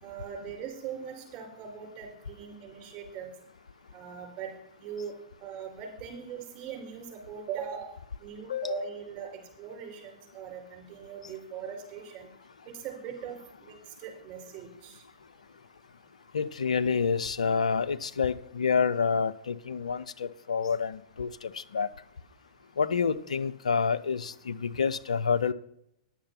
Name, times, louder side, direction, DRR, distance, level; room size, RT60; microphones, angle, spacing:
voice 1, 0.0-3.3 3.9-4.5 4.8-5.1 5.4-7.9 8.2-9.3 9.6-12.3 12.8-13.3 14.0-15.0, right 7 dB, 35° right, 4.4 m, -40 dB
voice 2, 8.5-8.8 16.3-21.9 22.8-25.5, left 6 dB, 80° left, 0.6 m, -28 dB
10.0 x 7.6 x 5.8 m
hypercardioid pair, 110°, 4 cm